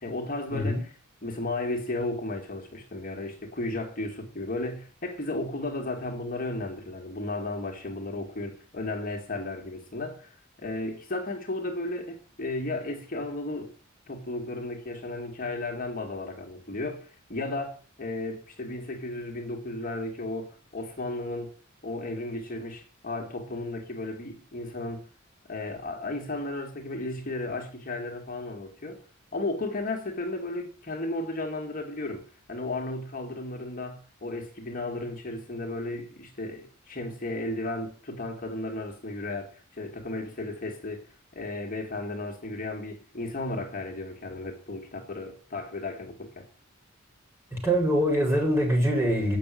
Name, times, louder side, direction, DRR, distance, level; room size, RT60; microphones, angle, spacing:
voice 1, 0.0-13.7 14.1-21.6 21.8-25.1 25.5-29.0 29.3-46.5, left 2 dB, 40° left, 2.1 m, -34 dB
voice 2, 47.5-49.4, equal, 15° right, 4.7 m, -24 dB
9.2 x 6.4 x 8.4 m
head